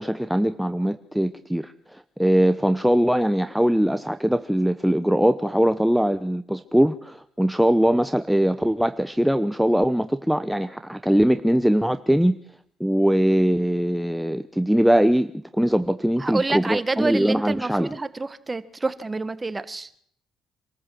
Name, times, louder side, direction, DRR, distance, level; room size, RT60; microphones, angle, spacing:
voice 1, 0.0-12.4 12.8-17.9, equal, ahead, 10 dB, 0.9 m, -21 dB
voice 2, 16.2-19.9, right 3 dB, 20° right, 13 dB, 1.5 m, -28 dB
26.0 x 13.5 x 7.7 m, 0.67 s
cardioid pair, 90°, 0 cm